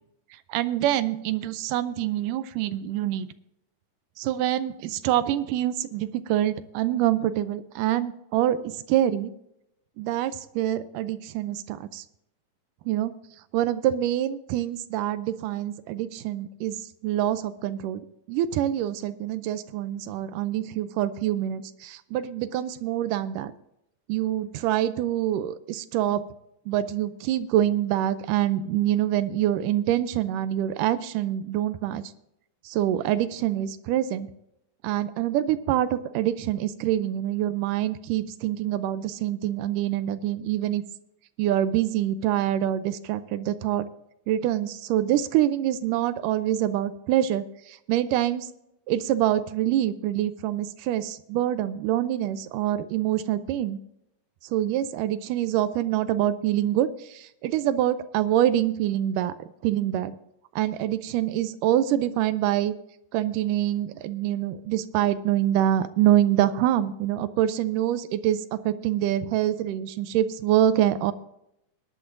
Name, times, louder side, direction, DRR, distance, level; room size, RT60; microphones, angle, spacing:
voice 1, 0.5-3.3 4.2-9.3 10.0-12.0 12.9-13.1 13.5-16.8 17.0-18.0 18.3-23.5 24.1-26.2 26.7-32.0 32.7-34.3 34.8-40.8 41.4-43.9 44.3-48.5 48.9-53.8 54.5-59.3 59.6-60.2 60.6-62.7 63.1-71.1, right 12 dB, 80° right, 13 dB, 2.2 m, -25 dB
20.5 x 11.0 x 2.6 m, 0.80 s
omnidirectional pair, 3.8 m